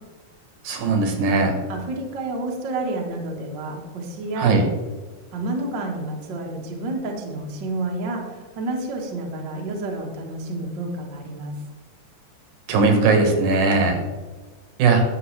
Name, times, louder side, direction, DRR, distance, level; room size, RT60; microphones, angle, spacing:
voice 1, 0.6-1.6 4.4-4.7 12.7-14.0 14.8-15.0, right 3 dB, 75° right, 4 dB, 2.6 m, -19 dB
voice 2, 1.7-4.6 5.3-11.5, right 2 dB, 45° right, 0 dB, 1.5 m, -30 dB
11.5 x 7.7 x 3.2 m, 1.3 s
omnidirectional pair, 3.6 m